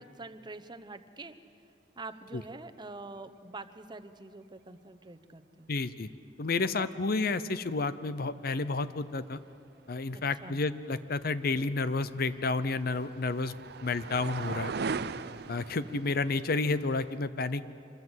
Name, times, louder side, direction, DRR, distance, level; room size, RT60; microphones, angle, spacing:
voice 1, 0.0-1.3 2.0-5.7 6.8-6.9 10.1-10.6, right 3 dB, 25° right, 9 dB, 0.9 m, -45 dB
voice 2, 5.7-6.1 6.4-9.4 9.9-14.7 15.5-17.6, left 3 dB, 55° left, 14 dB, 0.7 m, -31 dB
sound 1, 11.9-17.2, right 4 dB, 65° right, 0.6 m, -39 dB
26.0 x 21.0 x 8.1 m, 2.6 s
head